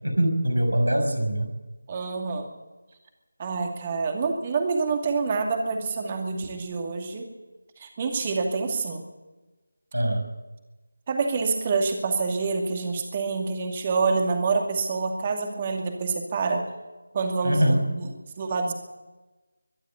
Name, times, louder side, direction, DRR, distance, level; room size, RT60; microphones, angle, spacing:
voice 1, 0.0-1.5 9.9-10.3 17.4-17.8, right 1 dB, 80° right, 5 dB, 5.5 m, -23 dB
voice 2, 1.9-2.5 3.4-7.3 7.8-9.0 11.1-16.7 17.1-18.1 18.4-18.7, right 4 dB, 25° right, 3 dB, 2.4 m, -27 dB
23.0 x 11.5 x 9.6 m, 1.1 s
figure-of-eight pair, 160°, 0 cm